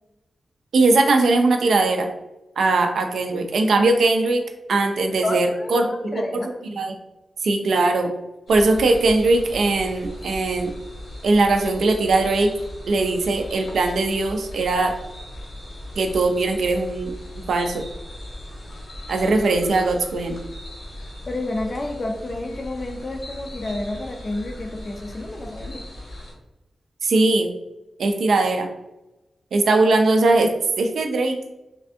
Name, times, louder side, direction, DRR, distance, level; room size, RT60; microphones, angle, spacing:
voice 1, 0.7-2.1 2.6-4.4 4.7-6.2 6.7-6.9 7.4-8.1 8.5-10.7 11.2-12.5 12.9-14.9 16.0-17.8 19.1-20.3 27.0-27.5 28.0-28.7 29.5-31.4, right 2 dB, 90° right, 4 dB, 0.4 m, -20 dB
voice 2, 5.2-6.5 21.3-25.8, left 1 dB, 35° left, 3 dB, 0.3 m, -30 dB
sound 1, 8.5-26.3, left 1 dB, 80° left, 0.9 m, -38 dB
3.3 x 2.5 x 2.5 m, 0.97 s
wide cardioid pair, 170°, 0 cm